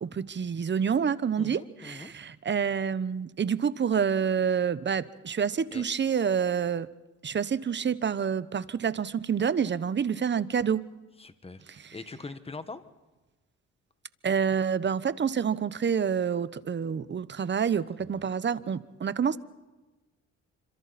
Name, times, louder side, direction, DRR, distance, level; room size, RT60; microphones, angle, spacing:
voice 1, 0.0-6.9 7.2-10.8 14.2-19.4, right 7 dB, 35° right, 16 dB, 1.0 m, -28 dB
voice 2, 1.4-2.1 5.7-5.8 11.2-12.8 18.1-18.3, left 3 dB, 20° left, 11 dB, 1.6 m, -42 dB
27.5 x 25.5 x 4.3 m, 1.1 s
cardioid pair, 90°, 30 cm